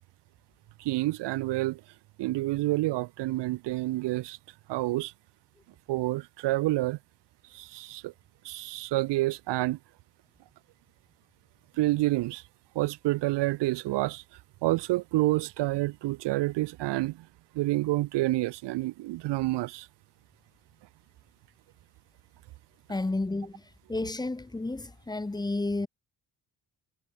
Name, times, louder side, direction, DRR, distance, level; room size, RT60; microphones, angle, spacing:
voice 1, 0.8-1.8 2.2-4.4 4.7-5.1 5.9-7.0 7.5-8.1 8.4-9.8 11.8-12.4 12.7-14.2 14.6-17.3 17.5-19.9, right 18 dB, 85° right, 0.7 m, -28 dB
voice 2, 22.9-23.6 23.9-25.9, left 2 dB, 10° left, 1.7 m, -31 dB
cardioid pair, 175°, 41 cm